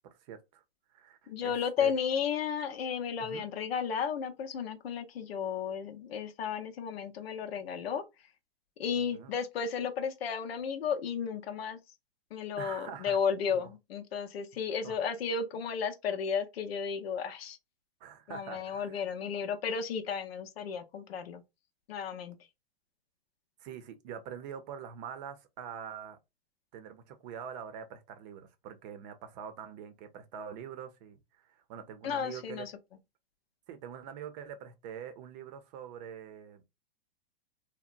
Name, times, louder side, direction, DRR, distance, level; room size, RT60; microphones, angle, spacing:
voice 1, 0.2-0.6 0.9-1.9 3.2-3.4 9.1-9.3 12.6-13.2 13.5-13.7 14.8-15.0 18.0-19.0 23.6-26.2 26.7-32.7 33.7-36.6, right 8 dB, 45° right, 0.6 m, -44 dB
voice 2, 1.3-8.0 8.8-11.8 12.3-17.6 18.3-21.4 21.9-22.4 32.0-32.7, left 7 dB, 75° left, 0.6 m, -33 dB
2.8 x 2.1 x 2.4 m
hypercardioid pair, 120°, 30 cm